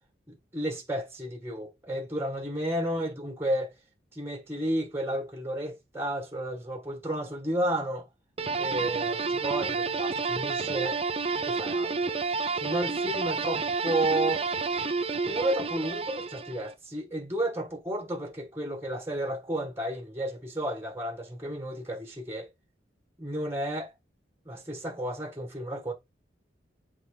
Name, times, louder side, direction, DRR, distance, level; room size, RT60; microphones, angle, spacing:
voice 1, 0.3-3.7 4.1-8.0 8.6-11.0 11.4-12.1 12.6-14.4 15.3-22.5 23.2-23.9 24.5-25.9, right 1 dB, 15° right, 1.8 m, -32 dB
sound 1, 8.4-16.7, right 4 dB, 30° right, 0.7 m, -30 dB
7.4 x 4.6 x 3.6 m
head